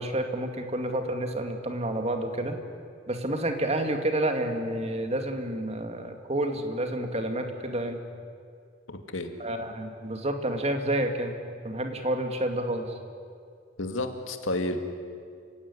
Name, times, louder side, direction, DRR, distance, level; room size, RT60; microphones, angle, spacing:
voice 1, 0.0-2.6 3.1-8.0 9.4-11.3 11.6-13.0, right 1 dB, 35° right, 5 dB, 2.4 m, -29 dB
voice 2, 8.9-9.3 13.8-14.8, left 2 dB, 90° left, 6 dB, 2.4 m, -31 dB
29.5 x 17.0 x 9.9 m, 2.2 s
head